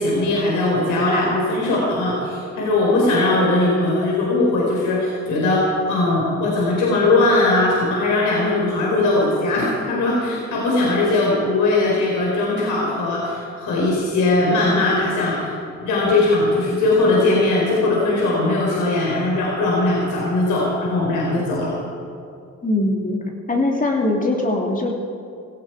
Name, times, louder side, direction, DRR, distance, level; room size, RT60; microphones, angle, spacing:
voice 1, 0.0-15.5 15.8-21.8, left 2 dB, 80° left, -4 dB, 4.3 m, -19 dB
voice 2, 22.6-23.2 23.5-24.9, left 2 dB, 25° left, 0 dB, 2.7 m, -21 dB
17.5 x 16.0 x 4.9 m, 2.4 s
cardioid pair, 90°, 30 cm